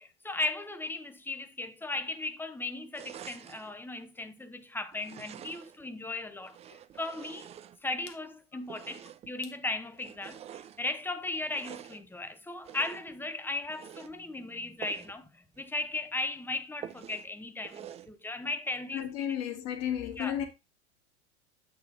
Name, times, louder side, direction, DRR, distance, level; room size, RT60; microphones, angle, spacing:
voice 1, 0.0-7.5 7.8-19.0 20.2-20.4, left 2 dB, 5° left, 0.9 m, -37 dB
sound 1, 2.9-3.8 4.9-5.8 6.4-8.1 8.6-9.4 9.9-10.8 11.4-12.1 12.6-13.2 13.6-14.1 14.8-15.2 15.5-15.6 16.0-16.1 16.8-17.3 17.6-18.1, right 10 dB, 20° right, 0.4 m, -47 dB
voice 2, 18.9-20.5, left 10 dB, 45° left, 2.0 m, -33 dB
8.0 x 4.8 x 3.9 m
hypercardioid pair, 90°, 35 cm